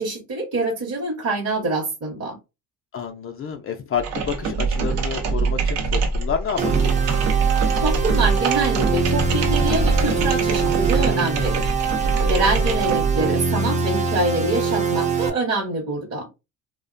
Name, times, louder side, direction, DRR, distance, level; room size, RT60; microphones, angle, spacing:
voice 1, 0.0-2.4 7.8-11.7 12.3-16.3, right 2 dB, 35° right, 0.9 m, -25 dB
voice 2, 2.9-6.9 12.2-12.5, left 7 dB, 35° left, 0.4 m, -29 dB
sound 1, 3.9-13.3, right 5 dB, 70° right, 0.8 m, -23 dB
sound 2, 6.6-15.3, right 5 dB, 20° right, 0.5 m, -24 dB
2.4 x 2.1 x 2.4 m
supercardioid pair, 70°, 42 cm